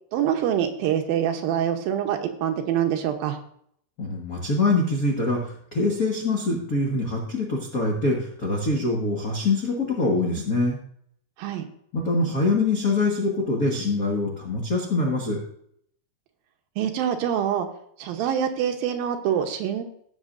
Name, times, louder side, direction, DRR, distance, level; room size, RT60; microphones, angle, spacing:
voice 1, 0.1-3.4 11.4-11.7 16.8-17.7 18.0-19.8, right 9 dB, 75° right, 5 dB, 2.6 m, -25 dB
voice 2, 4.0-10.8 11.9-15.4, left 2 dB, 60° left, -2 dB, 0.9 m, -24 dB
17.5 x 7.2 x 2.6 m, 0.67 s
omnidirectional pair, 4.4 m